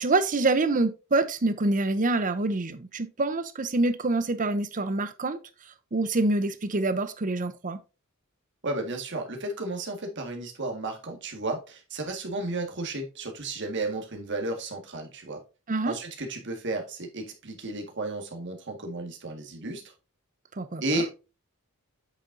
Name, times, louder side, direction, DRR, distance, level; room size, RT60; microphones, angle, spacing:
voice 1, 0.0-5.4 5.9-7.8 15.7-15.9 20.6-21.0, right 2 dB, 40° right, 0.7 m, -26 dB
voice 2, 8.6-15.4 15.9-19.8 20.8-21.1, right 2 dB, 55° right, 1.8 m, -33 dB
8.3 x 6.4 x 2.7 m
head